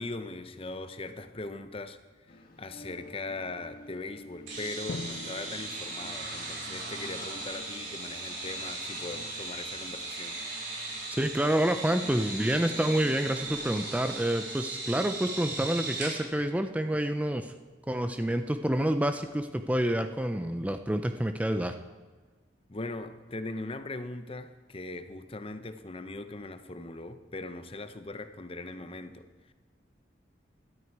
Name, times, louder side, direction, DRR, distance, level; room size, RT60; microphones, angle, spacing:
voice 1, 0.0-10.4 22.7-29.5, left 2 dB, 30° left, 0.7 m, -40 dB
sound 1, 2.3-13.9, left 1 dB, 50° left, 1.4 m, -52 dB
sound 2, 4.5-16.2, right 2 dB, 85° right, 6.1 m, -38 dB
Drum, 4.9-7.4, left 3 dB, 70° left, 0.5 m, -43 dB
voice 2, 11.1-17.5 17.9-21.7, right 1 dB, 10° right, 0.5 m, -28 dB
17.5 x 12.5 x 4.7 m
head